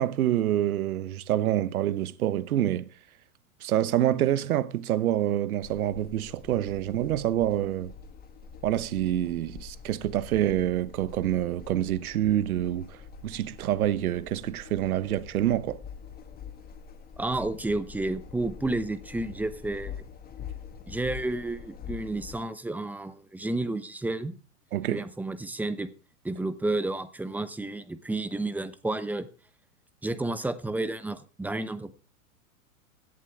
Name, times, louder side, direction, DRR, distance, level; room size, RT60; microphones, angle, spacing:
voice 1, 0.0-2.9 3.6-7.9 8.6-13.0 13.2-15.8 24.7-25.0, right 12 dB, 80° right, 1.0 m, -27 dB
sound 1, 5.6-22.4, left 7 dB, 20° left, 1.9 m, -45 dB
voice 2, 17.2-20.0 20.9-24.4 24.9-25.9 26.2-29.3 30.0-31.9, right 2 dB, 5° right, 0.8 m, -31 dB
16.5 x 11.0 x 3.6 m
hypercardioid pair, 125°, 43 cm